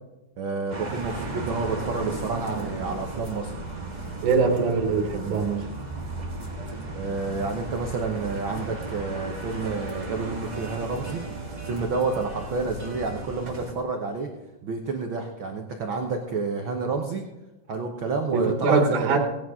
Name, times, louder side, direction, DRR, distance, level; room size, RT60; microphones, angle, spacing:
voice 1, 0.4-3.5 6.9-11.2 11.6-14.3 14.6-17.3 17.7-19.2, right 4 dB, 90° right, 2 dB, 1.1 m, -29 dB
sound 1, 0.7-13.7, right 2 dB, 20° right, 1.1 m, -35 dB
voice 2, 4.2-5.6 18.3-19.2, right 4 dB, 70° right, 1 dB, 2.6 m, -22 dB
17.0 x 10.0 x 3.7 m, 1.0 s
omnidirectional pair, 3.9 m